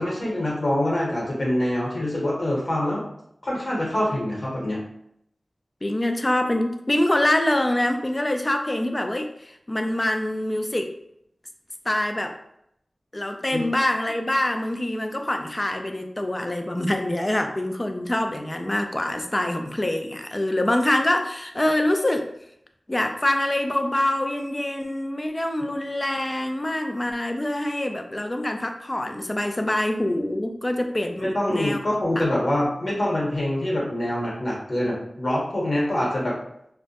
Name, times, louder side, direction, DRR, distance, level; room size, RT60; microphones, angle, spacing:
voice 1, 0.0-3.0 3.4-4.8 13.5-13.6 31.2-36.3, left 1 dB, 60° left, -4 dB, 1.0 m, -25 dB
voice 2, 5.8-10.9 11.9-12.4 13.1-22.3 22.9-31.8 32.2-32.3, left 1 dB, 30° left, 5 dB, 0.3 m, -25 dB
2.2 x 2.1 x 2.7 m, 0.74 s
cardioid pair, 45°, 0 cm